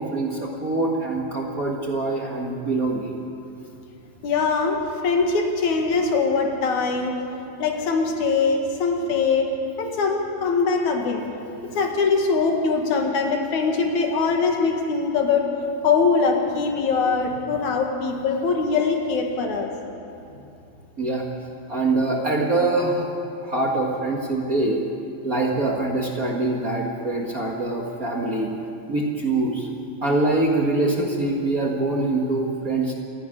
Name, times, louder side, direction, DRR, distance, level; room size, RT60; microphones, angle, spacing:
voice 1, 0.0-3.1 21.0-21.2 21.7-23.1 23.4-24.8 25.2-28.5 28.9-29.7 30.0-32.9, right 2 dB, 35° right, -1 dB, 1.6 m, -24 dB
voice 2, 4.2-7.2 7.6-9.5 9.8-11.2 11.6-15.5 15.8-19.7, left 4 dB, 80° left, 2 dB, 3.2 m, -22 dB
27.5 x 10.5 x 10.0 m, 2.7 s
omnidirectional pair, 3.4 m